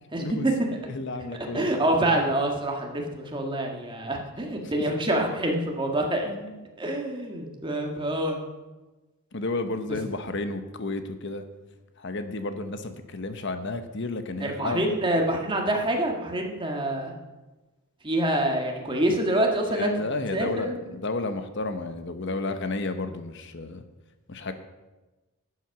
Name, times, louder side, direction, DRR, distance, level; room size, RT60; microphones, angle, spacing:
voice 1, 0.1-0.7 1.5-6.3 6.8-8.4 14.4-17.1 18.0-19.9 20.3-20.7, right 1 dB, 25° right, 1 dB, 1.7 m, -26 dB
voice 2, 0.9-1.7 4.7-5.0 6.2-6.6 9.3-11.4 12.0-15.0 19.7-23.8 24.3-24.5, left 2 dB, 55° left, 9 dB, 1.0 m, -32 dB
12.0 x 8.1 x 5.9 m, 1.1 s
head